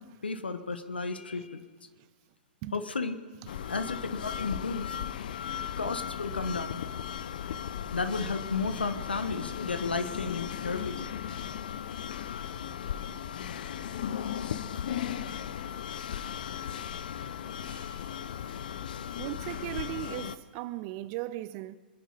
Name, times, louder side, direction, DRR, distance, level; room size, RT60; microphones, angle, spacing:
voice 1, 0.2-1.6 2.7-3.2 3.7-5.0 5.8-6.8 7.9-11.1, left 4 dB, 80° left, 1.3 m, -33 dB
sound 1, 3.5-20.4, left 9 dB, 60° left, 0.7 m, -36 dB
voice 2, 17.5-18.1 19.2-21.8, right 16 dB, 40° right, 0.6 m, -38 dB
26.0 x 10.5 x 5.4 m
figure-of-eight pair, 110°, 5 cm